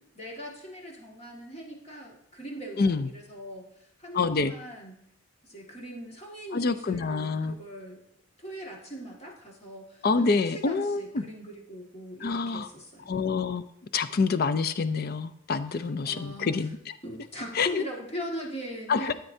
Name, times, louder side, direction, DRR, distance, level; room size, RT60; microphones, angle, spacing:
voice 1, 0.2-5.0 5.4-8.0 8.4-13.1 15.7-16.5 17.0-19.1, equal, 30° left, -2 dB, 1.9 m, -40 dB
voice 2, 2.8-3.1 4.1-4.5 6.5-7.6 10.0-11.2 12.2-12.7 13.1-13.6 13.9-16.9 17.5-17.8 18.9-19.1, left 4 dB, 45° left, 13 dB, 0.4 m, -27 dB
13.0 x 8.0 x 2.7 m, 0.74 s
head